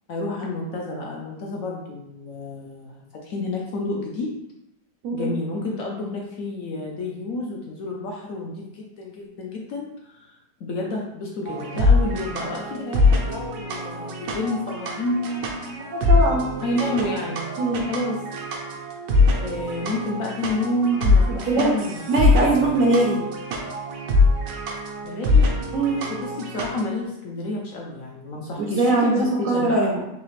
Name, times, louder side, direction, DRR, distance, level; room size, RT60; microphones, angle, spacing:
voice 1, 0.1-4.3 5.1-10.3 10.6-15.9 16.6-17.5 17.9-18.2 19.3-22.6 25.0-25.5 26.1-29.9, left 2 dB, 65° left, -1 dB, 0.9 m, -30 dB
sound 1, 11.5-26.8, left 3 dB, 80° right, 1.3 m, -23 dB
voice 2, 15.8-16.5 17.6-17.8 21.3-21.7 22.1-23.2 25.7-26.1 28.6-30.0, right 2 dB, 65° right, -1 dB, 0.8 m, -21 dB
4.1 x 2.8 x 3.1 m, 0.85 s
omnidirectional pair, 1.8 m